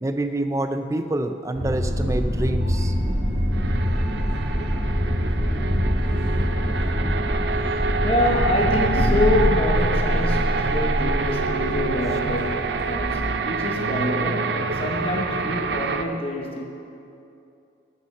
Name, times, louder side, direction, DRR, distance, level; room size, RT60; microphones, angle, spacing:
voice 1, 0.0-2.9, right 1 dB, 15° right, 8 dB, 0.4 m, -26 dB
sound 1, 1.5-13.3, equal, 55° right, 2.1 m, -24 dB
sound 2, 3.5-16.0, right 4 dB, 70° right, 0.6 m, -27 dB
voice 2, 7.6-16.7, left 2 dB, 30° left, 1 dB, 0.9 m, -26 dB
14.0 x 6.2 x 6.5 m, 2.7 s
head